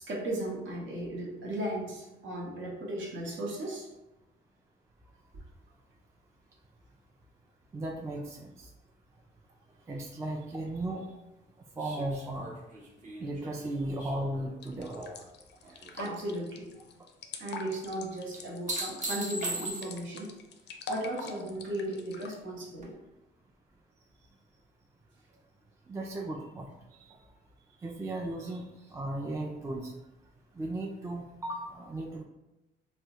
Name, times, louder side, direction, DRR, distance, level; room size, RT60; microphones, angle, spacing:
voice 1, 0.0-3.9 15.7-16.8 17.3-20.3 20.9-22.9, right 1 dB, 75° right, -3 dB, 0.9 m, -36 dB
voice 2, 7.7-8.7 9.9-11.1 11.8-12.5 13.2-15.1 25.9-26.7 27.1-27.2 27.8-28.6 28.9-29.9 30.6-32.2, right 1 dB, 15° right, -1 dB, 0.3 m, -36 dB
sound 1, 11.8-15.3 15.6-16.2 18.3-20.2 22.8-22.9, right 2 dB, 40° right, 0.8 m, -39 dB
sound 2, 14.6-22.3, left 3 dB, 60° left, 0.4 m, -44 dB
3.4 x 2.1 x 2.8 m, 0.98 s
cardioid pair, 90°, 20 cm